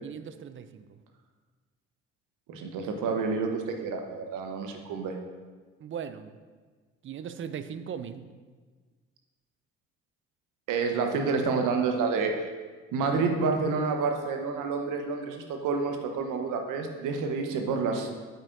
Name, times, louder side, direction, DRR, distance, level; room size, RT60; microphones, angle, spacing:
voice 1, 0.0-1.0 5.8-6.4 7.0-8.3, right 8 dB, 35° right, 11 dB, 0.6 m, -39 dB
voice 2, 2.5-5.2 10.7-12.5 12.9-18.3, right 4 dB, 60° right, 4 dB, 1.1 m, -29 dB
8.8 x 8.0 x 2.7 m, 1.4 s
hypercardioid pair, 55°, 36 cm